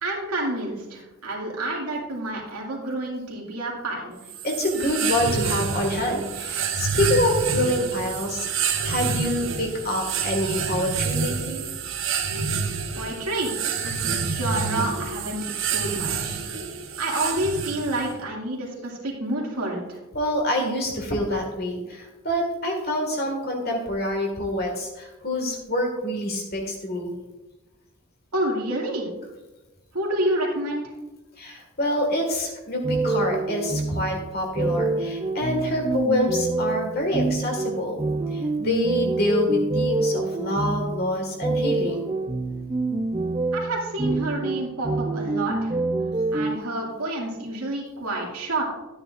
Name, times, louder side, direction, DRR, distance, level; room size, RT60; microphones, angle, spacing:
voice 1, 0.0-4.2 12.9-16.4 17.0-20.0 28.3-29.1 29.9-30.9 43.5-45.8 46.3-48.6, right 1 dB, 85° right, -2 dB, 2.3 m, -29 dB
sound 1, 4.3-18.1, right 5 dB, 60° right, 0.9 m, -28 dB
voice 2, 4.4-11.6 20.1-27.2 31.4-38.0 38.3-42.0, left 1 dB, 45° left, 2 dB, 1.8 m, -26 dB
sound 2, 32.8-46.6, right 2 dB, 20° right, 0.4 m, -26 dB
12.5 x 9.4 x 2.5 m, 1.1 s
head